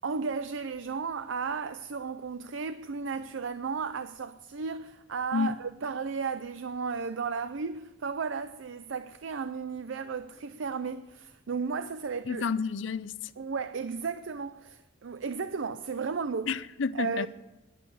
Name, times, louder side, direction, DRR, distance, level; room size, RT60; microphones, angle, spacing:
voice 1, 0.0-12.5 13.4-16.5 16.9-17.3, right 5 dB, 80° right, 0.5 m, -34 dB
voice 2, 12.3-13.2 16.5-17.3, left 5 dB, 75° left, 0.6 m, -30 dB
11.0 x 11.0 x 8.5 m
head